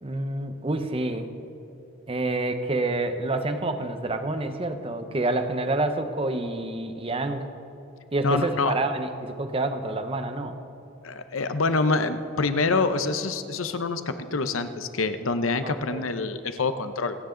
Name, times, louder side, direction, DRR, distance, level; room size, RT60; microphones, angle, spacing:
voice 1, 0.0-1.3 2.1-7.5 8.1-10.6 15.6-16.0, right 2 dB, 25° right, 8 dB, 0.8 m, -28 dB
voice 2, 8.2-8.7 11.0-17.2, left 3 dB, 85° left, 10 dB, 0.8 m, -26 dB
28.0 x 9.5 x 3.9 m, 2.9 s
head